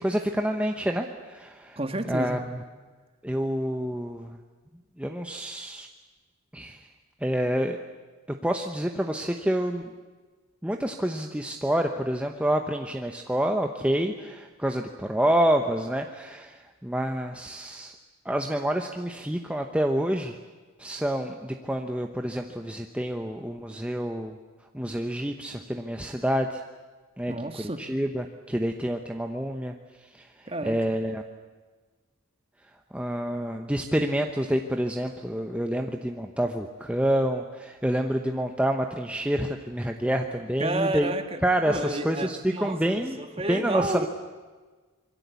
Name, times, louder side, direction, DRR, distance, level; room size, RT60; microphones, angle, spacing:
voice 1, 0.0-1.8 2.1-2.6 3.2-4.4 5.0-5.9 6.5-6.8 7.2-7.8 8.4-9.8 10.6-17.9 18.2-20.4 20.8-24.4 24.7-26.6 27.2-27.3 27.6-29.7 30.1-30.3 30.6-31.2 32.9-41.1 41.4-43.1 43.5-44.1, right 1 dB, 5° right, 4 dB, 1.0 m, -28 dB
voice 2, 1.8-2.4 27.3-27.9 30.4-30.8 40.6-44.1, right 2 dB, 25° right, 8 dB, 1.8 m, -31 dB
26.0 x 23.0 x 8.3 m, 1.3 s
head